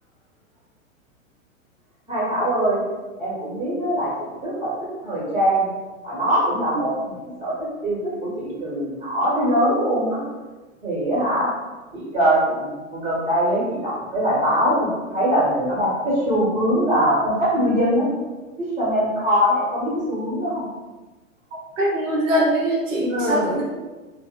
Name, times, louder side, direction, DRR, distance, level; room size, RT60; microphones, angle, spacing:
voice 1, 2.1-2.8 3.2-4.7 5.0-5.7 6.0-7.5 7.8-10.2 10.8-11.5 11.9-18.1 18.6-20.7 23.1-23.5, equal, 15° right, -8 dB, 1.3 m, -22 dB
voice 2, 21.8-23.6, right 1 dB, 65° right, -5 dB, 1.3 m, -22 dB
3.2 x 3.1 x 2.9 m, 1.2 s
figure-of-eight pair, 100°, 41 cm